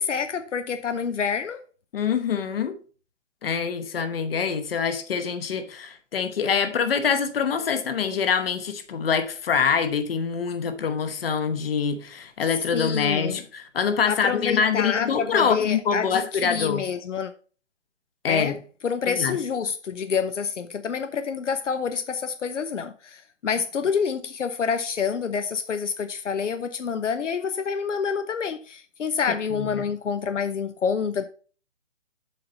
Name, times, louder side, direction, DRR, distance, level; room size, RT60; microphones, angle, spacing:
voice 1, 0.0-1.6 12.7-13.4 14.1-17.3 18.3-18.6 18.8-31.2, left 6 dB, 80° left, 0.8 m, -27 dB
voice 2, 1.9-2.8 3.4-16.9 18.2-18.6 19.1-19.4 29.5-29.8, left 6 dB, 50° left, 1.1 m, -25 dB
7.4 x 4.2 x 5.3 m
hypercardioid pair, 155°, 36 cm